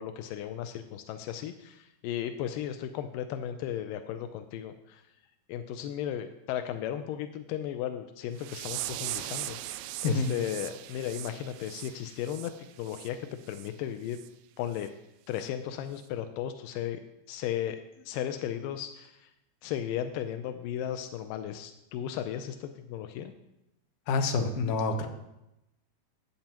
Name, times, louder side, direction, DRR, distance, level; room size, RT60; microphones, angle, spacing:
voice 1, 0.0-5.0 5.5-14.2 14.6-14.9 15.3-17.0 17.3-19.3 19.6-23.3, left 10 dB, 85° left, 8 dB, 1.9 m, -35 dB
sound 1, 8.4-13.1 13.5-13.7 14.1-14.3 14.8-14.9 15.4-15.5, right 14 dB, 80° right, 2.3 m, -40 dB
voice 2, 24.1-25.1, left 3 dB, 65° left, 5 dB, 2.1 m, -27 dB
15.0 x 8.7 x 3.0 m, 0.89 s
omnidirectional pair, 4.6 m